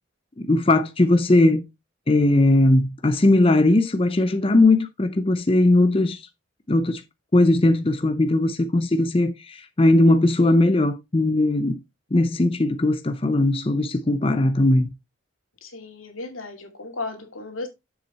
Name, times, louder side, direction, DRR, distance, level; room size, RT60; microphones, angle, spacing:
voice 1, 0.4-1.6 2.1-6.3 6.7-7.0 7.3-11.8 12.1-14.9, left 2 dB, 25° left, 0.6 m, -19 dB
voice 2, 15.6-17.7, left 3 dB, 90° left, 2.4 m, -35 dB
7.3 x 6.1 x 4.0 m
head